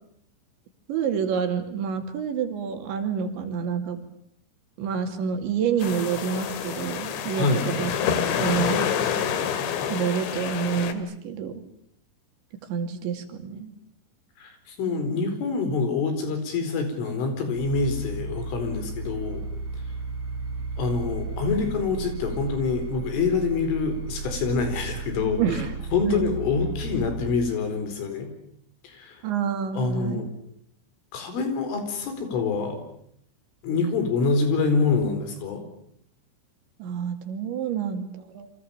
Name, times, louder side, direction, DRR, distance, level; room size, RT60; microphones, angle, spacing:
voice 1, 0.9-4.0 4.8-7.9 8.4-8.9 9.9-11.6 12.7-13.7 25.4-25.7 26.0-26.3 29.2-30.2 36.8-38.5, right 7 dB, 70° right, 6 dB, 4.8 m, -28 dB
sound 1, 5.8-10.9, left 8 dB, 70° left, 4.1 m, -27 dB
voice 2, 7.4-7.7 14.4-19.5 20.8-25.6 25.9-28.3 28.8-29.2 29.7-30.3 31.1-32.8 33.6-35.7, left 4 dB, 90° left, 7 dB, 6.9 m, -26 dB
sound 2, 17.5-27.4, right 3 dB, 35° right, 5.1 m, -34 dB
29.0 x 25.5 x 7.2 m, 0.68 s
omnidirectional pair, 5.5 m